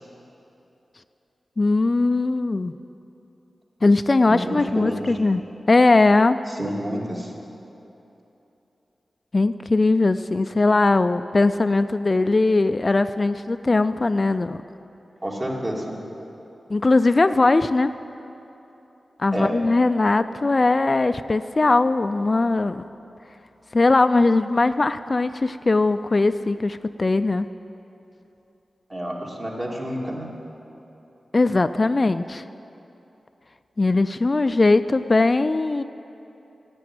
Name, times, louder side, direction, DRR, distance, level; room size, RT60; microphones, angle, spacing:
voice 1, 1.6-2.7 3.8-5.4 5.7-6.4 9.3-14.6 16.7-17.9 19.2-22.8 23.7-27.5 31.3-32.4 33.8-35.8, left 3 dB, 45° left, 11 dB, 0.3 m, -20 dB
voice 2, 4.3-5.2 6.5-7.3 15.2-16.0 19.3-19.5 28.9-30.3, equal, 35° right, -3 dB, 2.5 m, -29 dB
10.5 x 8.4 x 9.6 m, 3.0 s
cardioid pair, 55°, 0 cm